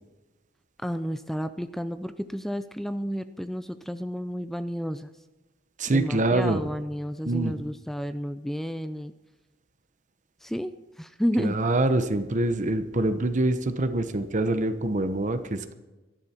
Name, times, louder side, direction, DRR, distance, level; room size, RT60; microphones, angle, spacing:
voice 1, 0.8-5.1 5.9-9.1 10.4-11.6, equal, ahead, 11 dB, 0.5 m, -31 dB
voice 2, 5.8-6.6 7.3-7.5 11.4-15.7, right 2 dB, 40° right, 9 dB, 1.0 m, -25 dB
18.5 x 13.5 x 4.5 m, 1.1 s
head